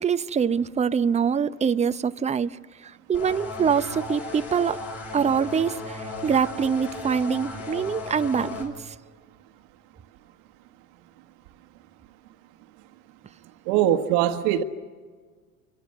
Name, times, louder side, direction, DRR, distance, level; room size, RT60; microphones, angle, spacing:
voice 1, 0.0-2.5 2.8-4.8 5.1-8.9, right 7 dB, 15° right, 0.7 m, -24 dB
sound 1, 3.1-8.7, left 3 dB, 35° left, 7.7 m, -36 dB
voice 2, 13.7-14.6, right 11 dB, 60° right, 1.5 m, -21 dB
29.0 x 25.5 x 6.6 m
hypercardioid pair, 75°, 42 cm